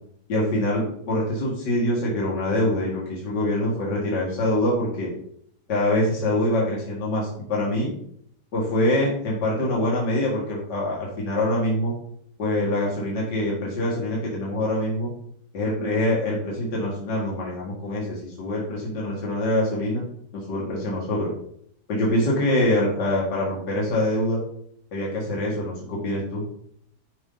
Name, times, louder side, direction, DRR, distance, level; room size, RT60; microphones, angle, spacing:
voice 1, 0.3-5.1 5.7-7.9 8.5-11.9 12.4-15.1 15.5-20.0 20.3-21.3 21.9-24.4 24.9-26.4, left 1 dB, 75° left, -4 dB, 2.5 m, -24 dB
11.0 x 5.2 x 3.9 m, 0.68 s
omnidirectional pair, 1.9 m